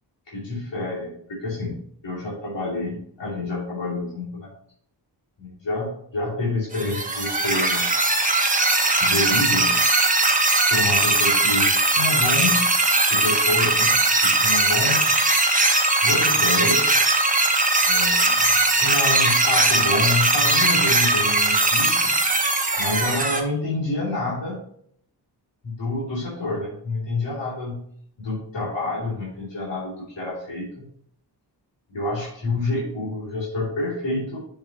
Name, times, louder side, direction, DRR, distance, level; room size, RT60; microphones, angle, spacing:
voice 1, 0.3-1.8 2.0-4.5 5.4-7.8 9.0-9.7 10.7-12.7 13.1-15.1 16.0-17.1 17.8-22.1 22.8-24.6 25.6-27.8 28.2-30.8 31.9-34.4, left 2 dB, 80° left, -7 dB, 3.0 m, -28 dB
sound 1, 6.7-23.4, right 2 dB, 20° right, 1.1 m, -20 dB
6.9 x 6.4 x 2.9 m, 0.64 s
wide cardioid pair, 85°, 43 cm